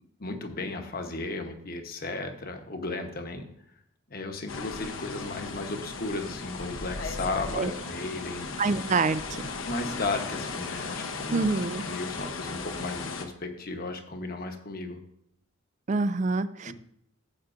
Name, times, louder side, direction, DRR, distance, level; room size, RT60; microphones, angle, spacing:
voice 1, 0.2-3.5 4.1-8.5 9.7-11.4 11.8-15.0 16.7-16.8, left 2 dB, 45° left, 5 dB, 1.1 m, -35 dB
sound 1, 4.5-13.2, left 4 dB, 75° left, 1.0 m, -36 dB
voice 2, 8.6-9.4 11.3-11.8 15.9-16.7, right 3 dB, 35° right, 13 dB, 0.3 m, -26 dB
14.0 x 8.0 x 2.6 m, 0.72 s
head